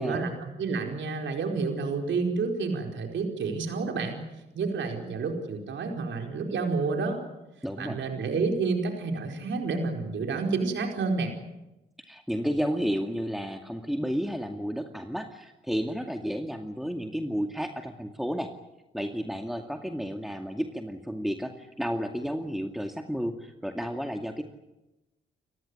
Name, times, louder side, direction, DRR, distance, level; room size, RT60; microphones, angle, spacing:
voice 1, 0.0-4.3 4.5-7.2 7.8-11.3, right 4 dB, 75° right, 3 dB, 4.6 m, -29 dB
voice 2, 7.6-8.0 12.0-18.5 18.9-24.4, equal, ahead, 4 dB, 2.3 m, -32 dB
29.5 x 15.0 x 9.8 m, 1.0 s
supercardioid pair, 60°, 20 cm